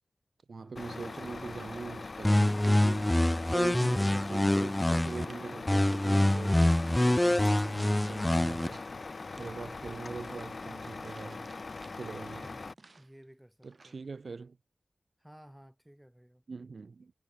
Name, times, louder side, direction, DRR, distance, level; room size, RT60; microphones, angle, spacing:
voice 1, 0.5-3.1 3.5-6.6 7.1-8.8 9.4-11.5 12.0-12.5 13.6-14.6 16.5-17.1, right 4 dB, 70° right, 0.4 m, -42 dB
Truck, 0.7-12.7, left 3 dB, 60° left, 0.7 m, -42 dB
sound 1, 2.2-5.3 5.7-8.7, left 1 dB, 20° left, 0.4 m, -25 dB
sound 2, 2.2-3.8 4.1-4.8 5.1-5.5 5.9-6.4 6.8-8.9 9.3-13.2 13.6-14.1, right 3 dB, 55° right, 2.1 m, -58 dB
voice 2, 12.3-14.0 15.2-16.4, equal, 10° right, 4.3 m, -56 dB
cardioid pair, 45°, 0 cm